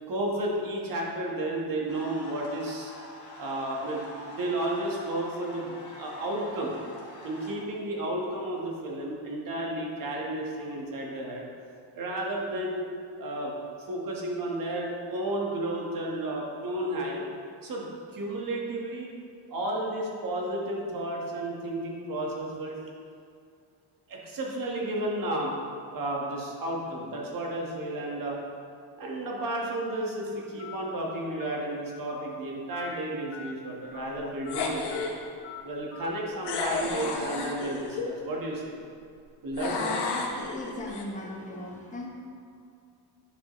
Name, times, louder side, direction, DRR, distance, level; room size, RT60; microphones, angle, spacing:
voice 1, 0.0-2.9 3.4-4.0 4.3-6.7 7.2-11.4 11.9-12.9 13.2-13.5 13.9-17.2 17.6-19.1 19.5-22.8 24.1-25.5 25.9-28.4 29.0-35.0 35.6-38.8 39.4-40.1, right 1 dB, 45° right, -2 dB, 1.4 m, -32 dB
sound 1, 1.9-7.5, left 2 dB, 40° left, 1.7 m, -45 dB
Telephone, 29.7-29.9 30.6-30.8 31.4-31.6 32.1-32.3 32.7-32.9 33.3-33.5 33.9-34.1 34.5-34.6 34.9-35.1 35.4-35.6 35.9-36.1 36.4-36.7, left 11 dB, 80° left, 0.7 m, -44 dB
sound 2, 34.5-35.2 36.5-38.1 39.6-41.0, left 4 dB, 60° left, 1.0 m, -32 dB
voice 2, 40.1-42.1, left 1 dB, 15° left, -1 dB, 1.0 m, -39 dB
10.0 x 5.2 x 3.1 m, 2.3 s
cardioid pair, 140°, 46 cm